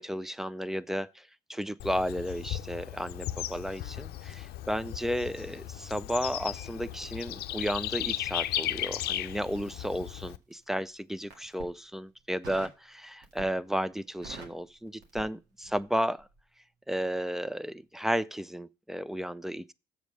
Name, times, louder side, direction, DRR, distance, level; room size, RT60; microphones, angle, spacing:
voice 1, 0.0-16.3 16.9-19.7, equal, ahead, 0.3 m, -33 dB
Bird / Insect, 1.8-10.4, left 13 dB, 70° left, 0.6 m, -36 dB
Crackle, 9.5-10.6 11.2-11.8 12.4-12.8 13.2-13.7 14.0-15.9 16.2-16.4, right 3 dB, 85° right, 1.9 m, -47 dB
7.4 x 5.2 x 6.3 m
cardioid pair, 110°, 17 cm